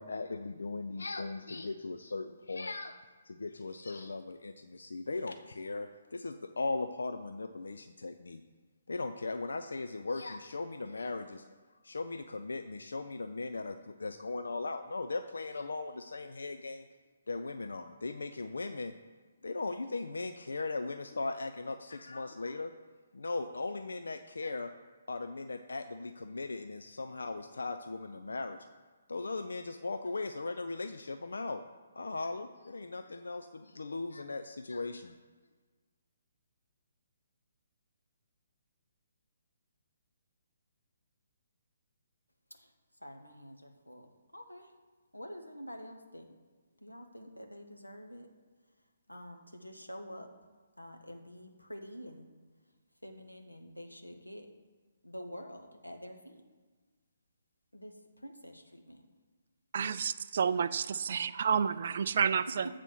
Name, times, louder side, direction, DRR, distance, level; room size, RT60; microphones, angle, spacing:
voice 1, 0.0-3.0 3.3-8.4 8.9-11.4 11.8-16.9 17.3-18.9 19.4-22.7 23.1-24.7 25.1-28.6 29.1-31.6 32.0-35.1, left 3 dB, 65° left, 8 dB, 0.4 m, -38 dB
voice 2, 43.0-44.7 45.1-46.3 46.8-48.3 49.1-50.3 50.8-52.3 53.0-54.5 55.0-56.4 57.7-59.0, equal, 85° left, 4 dB, 1.0 m, -47 dB
voice 3, 59.7-62.7, right 7 dB, 45° right, 14 dB, 0.3 m, -30 dB
7.9 x 4.1 x 6.2 m, 1.4 s
figure-of-eight pair, 135°, 0 cm